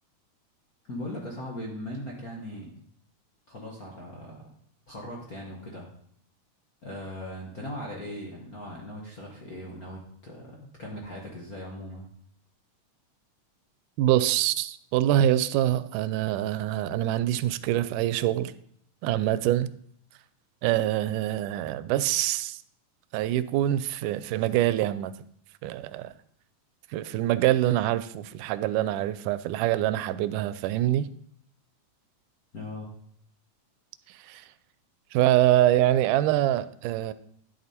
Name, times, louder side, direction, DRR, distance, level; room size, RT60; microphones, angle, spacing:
voice 1, 0.9-2.7 3.5-4.4 4.9-5.9 6.8-12.0 32.5-32.9, left 1 dB, 45° left, -2 dB, 1.2 m, -39 dB
voice 2, 14.0-18.5 19.0-19.7 20.6-22.6 23.1-25.1 25.6-26.1 26.9-31.1 34.1-34.5 35.1-37.1, right 13 dB, 90° right, 14 dB, 2.1 m, -25 dB
10.5 x 6.8 x 4.3 m, 0.66 s
omnidirectional pair, 3.6 m